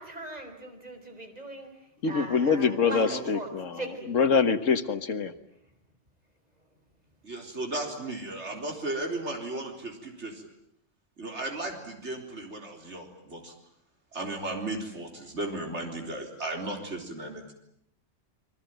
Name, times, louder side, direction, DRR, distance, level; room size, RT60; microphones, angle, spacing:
voice 1, 0.0-1.7 2.1-3.5 3.8-4.1, right 1 dB, 35° right, 4 dB, 5.4 m, -39 dB
voice 2, 2.0-5.3, left 5 dB, 85° left, 10 dB, 1.8 m, -25 dB
voice 3, 2.9-3.2 7.2-10.4 11.2-13.5 14.1-17.4, right 2 dB, 65° right, 3 dB, 4.3 m, -35 dB
30.0 x 21.5 x 9.2 m, 0.74 s
omnidirectional pair, 1.3 m